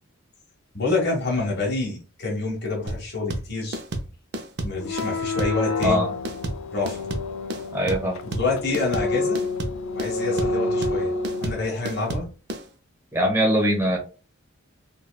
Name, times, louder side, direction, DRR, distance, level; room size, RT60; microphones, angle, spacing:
voice 1, 0.7-3.8 4.6-6.0 6.7-7.1 8.2-9.4 9.9-11.1 11.4-12.3, left 3 dB, 55° left, -2 dB, 1.3 m, -27 dB
sound 1, 2.9-12.6, right 1 dB, 55° right, 0.5 m, -31 dB
sound 2, 4.8-11.7, left 3 dB, 75° left, 0.4 m, -28 dB
voice 2, 7.7-8.2 13.1-14.0, equal, 10° right, -2 dB, 1.1 m, -21 dB
4.0 x 2.3 x 2.2 m, 0.34 s
head